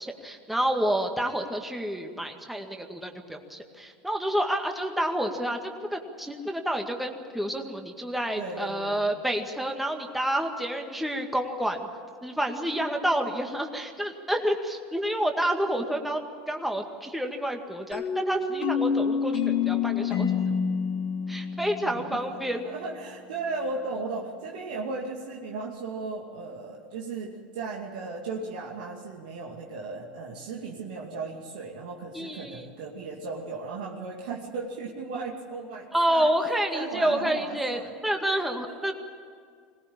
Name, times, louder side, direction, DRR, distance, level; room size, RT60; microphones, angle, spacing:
voice 1, 0.0-11.8 12.2-16.2 16.5-20.5 21.3-22.6 32.1-32.7 35.9-38.9, right 1 dB, 5° right, 3 dB, 2.0 m, -29 dB
voice 2, 8.4-9.1 21.8-38.0 38.3-38.9, right 3 dB, 75° right, -1 dB, 2.4 m, -36 dB
sound 1, 17.9-22.6, left 6 dB, 60° left, 2.8 m, -27 dB
22.0 x 18.5 x 8.7 m, 2.1 s
hypercardioid pair, 95°, 5 cm